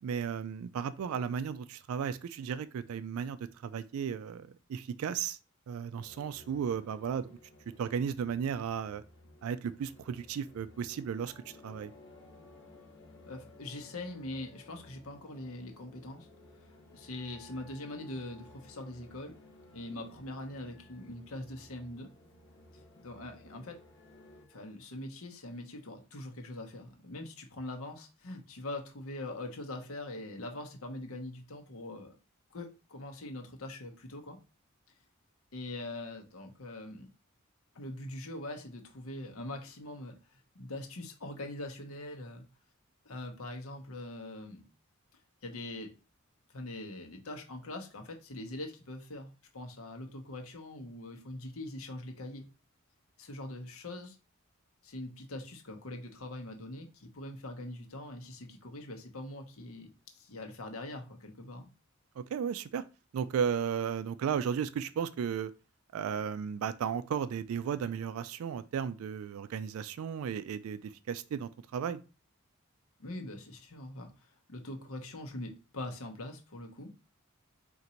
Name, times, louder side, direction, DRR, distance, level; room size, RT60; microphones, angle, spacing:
voice 1, 0.0-5.4 5.7-7.4 7.8-9.0 9.4-11.9 62.2-62.8 63.1-65.5 65.9-72.0, right 7 dB, 80° right, 0.3 m, -35 dB
sound 1, 6.0-24.5, left 1 dB, 55° left, 0.6 m, -58 dB
sound 2, 11.2-24.7, left 2 dB, 20° left, 1.4 m, -61 dB
voice 2, 13.3-16.3 16.9-19.4 19.7-22.1 22.7-23.8 24.5-32.1 32.5-34.4 35.5-37.1 37.7-42.5 43.0-44.7 45.4-45.9 46.5-52.5 53.2-54.2 54.8-59.9 60.1-61.7 73.0-76.9, left 1 dB, 80° left, 0.9 m, -43 dB
3.9 x 2.5 x 4.3 m
head